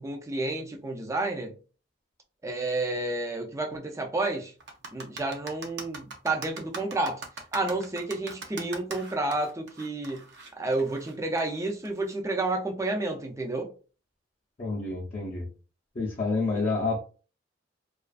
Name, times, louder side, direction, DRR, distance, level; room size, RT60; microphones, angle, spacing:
voice 1, 0.0-1.6 2.4-4.5 4.9-7.2 7.5-10.2 10.6-13.7 16.5-16.7, right 2 dB, 15° right, 0.4 m, -30 dB
sound 1, 4.6-12.1, right 3 dB, 60° right, 0.6 m, -41 dB
voice 2, 14.6-15.5 16.0-17.0, left 3 dB, 35° left, 0.5 m, -28 dB
2.3 x 2.3 x 2.4 m
head